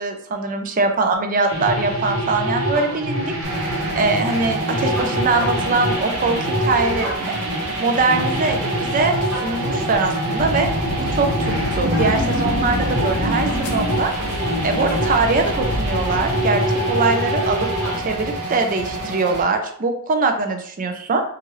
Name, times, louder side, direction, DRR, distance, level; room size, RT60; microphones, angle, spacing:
voice 1, 0.0-3.3 4.0-7.3 7.8-10.7 11.1-11.3 11.7-14.1 14.6-17.7 18.0-21.2, right 3 dB, 35° right, 5 dB, 0.4 m, -22 dB
sound 1, 1.5-18.0, equal, 60° right, 1.0 m, -25 dB
sound 2, 3.4-19.4, right 2 dB, 85° right, 0.8 m, -29 dB
sound 3, 10.4-16.5, left 1 dB, 65° left, 0.5 m, -28 dB
3.0 x 2.3 x 3.0 m, 0.62 s
head